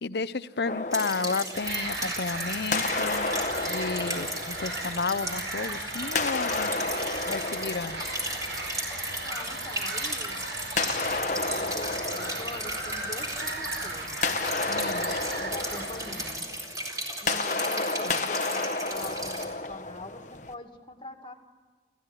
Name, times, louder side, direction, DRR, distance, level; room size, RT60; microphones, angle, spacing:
voice 1, 0.0-3.3 3.6-6.9 7.3-8.0 14.7-15.2 18.0-18.3, left 4 dB, 65° left, 15 dB, 0.7 m, -32 dB
sound 1, 0.6-2.3 2.7-5.5 6.0-8.9 10.8-13.5 13.9-20.5, left 3 dB, 45° left, 1.1 m, -32 dB
sound 2, 0.9-19.4, right 1 dB, 20° right, 4.3 m, -36 dB
sound 3, 1.5-16.4, right 2 dB, 85° right, 5.9 m, -37 dB
voice 2, 9.2-10.4 10.7-14.2 15.4-16.5 17.2-21.3, left 1 dB, 30° left, 5 dB, 2.1 m, -44 dB
30.0 x 14.5 x 9.9 m, 1.5 s
head